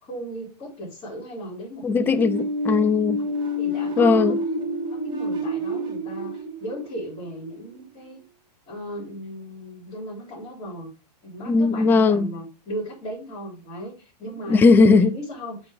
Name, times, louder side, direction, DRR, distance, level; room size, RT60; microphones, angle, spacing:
voice 1, 0.0-2.4 3.2-4.4 4.9-8.2 8.7-10.9 11.2-14.6 15.0-15.7, equal, 25° left, 3.0 m, -36 dB
voice 2, 1.8-3.2 4.0-4.4 11.5-12.3 14.5-15.1, left 4 dB, 10° left, 0.4 m, -18 dB
sound 1, 2.0-7.7, equal, 20° right, 1.5 m, -28 dB
8.1 x 3.3 x 4.9 m
hypercardioid pair, 120°, 21 cm